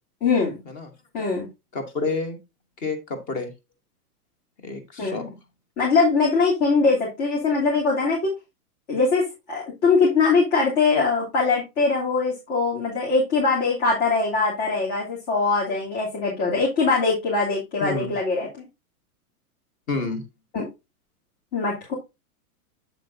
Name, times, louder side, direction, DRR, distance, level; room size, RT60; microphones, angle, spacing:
voice 1, 0.2-0.6 1.1-1.5 5.0-5.3 5.8-8.3 8.9-18.7 20.5-20.7 21.5-21.9, left 4 dB, 45° left, -4 dB, 3.1 m, -22 dB
voice 2, 1.7-2.4 2.8-3.5 4.6-5.3 17.8-18.2 19.9-20.2, left 3 dB, 20° left, 9 dB, 1.0 m, -29 dB
8.1 x 7.3 x 2.7 m, 0.24 s
supercardioid pair, 165°, 46 cm